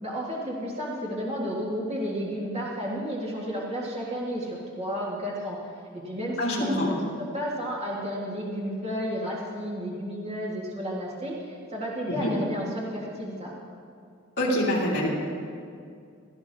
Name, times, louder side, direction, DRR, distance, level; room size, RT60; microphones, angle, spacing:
voice 1, 0.0-5.6 5.9-7.0 7.3-13.5, equal, 30° right, -5 dB, 1.8 m, -32 dB
voice 2, 6.4-6.9 12.1-12.3 14.4-15.1, left 1 dB, 55° left, -7 dB, 2.8 m, -25 dB
17.0 x 13.0 x 2.8 m, 2.3 s
head